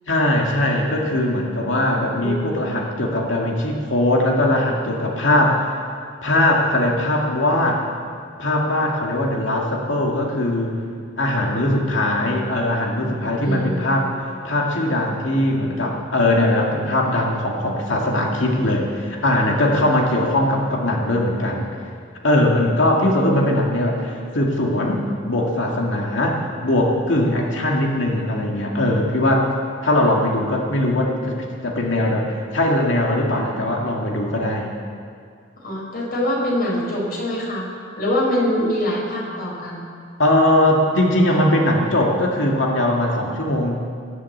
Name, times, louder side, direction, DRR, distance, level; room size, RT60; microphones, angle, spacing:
voice 1, 0.1-5.7 6.2-7.8 8.4-10.8 11.2-14.1 14.4-21.8 22.2-29.5 29.8-34.7 40.2-43.8, left 1 dB, 75° left, -1 dB, 2.1 m, -20 dB
voice 2, 2.2-2.5 13.4-14.0 35.6-37.7 38.0-39.8, left 1 dB, 50° left, -2 dB, 4.6 m, -24 dB
20.5 x 7.7 x 8.4 m, 2.2 s
head